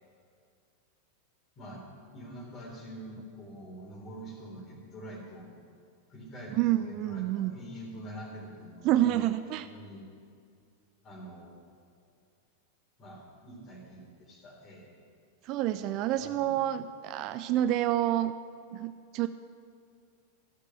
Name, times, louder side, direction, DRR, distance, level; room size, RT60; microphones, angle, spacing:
voice 1, 1.5-1.8 2.1-5.5 6.1-9.1 9.6-10.0 11.0-11.6 13.0-13.2 13.4-14.9 16.2-16.5, right 1 dB, 30° left, -2 dB, 3.4 m, -45 dB
voice 2, 6.6-7.6 8.8-9.7 15.4-18.3 18.7-19.3, right 13 dB, 40° right, 12 dB, 0.3 m, -28 dB
12.5 x 6.6 x 7.2 m, 2.3 s
figure-of-eight pair, 90°, 0 cm